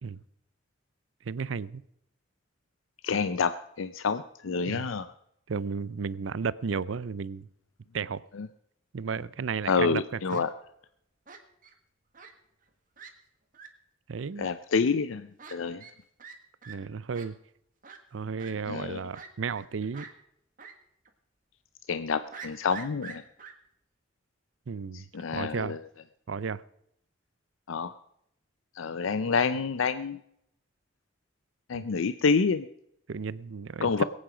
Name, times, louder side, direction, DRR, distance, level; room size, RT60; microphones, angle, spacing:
voice 1, 1.2-1.8 4.7-4.9 5.5-7.5 7.9-8.2 8.9-10.4 14.1-14.5 16.7-17.3 18.1-20.1 24.7-25.8 26.3-26.6 31.7-31.8 33.1-34.0, right 5 dB, 80° right, 19 dB, 0.5 m, -33 dB
voice 2, 3.0-3.5 3.8-5.1 9.7-10.5 14.4-15.8 18.7-19.0 21.9-23.2 24.9-25.8 27.7-27.9 28.8-30.2 31.7-32.7 33.8-34.0, left 5 dB, 85° left, 12 dB, 0.5 m, -28 dB
Fowl, 9.4-9.8 10.3-10.4 11.3-11.7 12.1-12.3 12.6-12.7 13.0-13.1 13.5-13.7 14.4-14.5 15.4-15.5 15.8-15.9 16.2-16.4 16.6-16.7 17.1-17.3 17.8-18.0 18.4-18.5 19.1-19.7 19.9-20.1 20.6-20.7 21.1-21.2 22.3-23.5, right 5 dB, 45° right, 1.6 m, -45 dB
22.0 x 8.8 x 5.0 m, 0.76 s
head